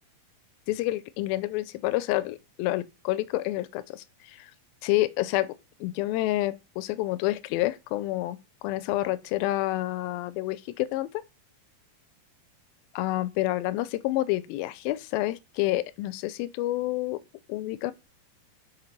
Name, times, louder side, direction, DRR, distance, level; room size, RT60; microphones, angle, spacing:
voice 1, 0.7-4.5 4.8-8.4 8.6-11.2 13.0-17.2 17.5-17.9, left 17 dB, 85° left, 2.4 m, -28 dB
7.9 x 4.8 x 5.4 m
omnidirectional pair, 4.3 m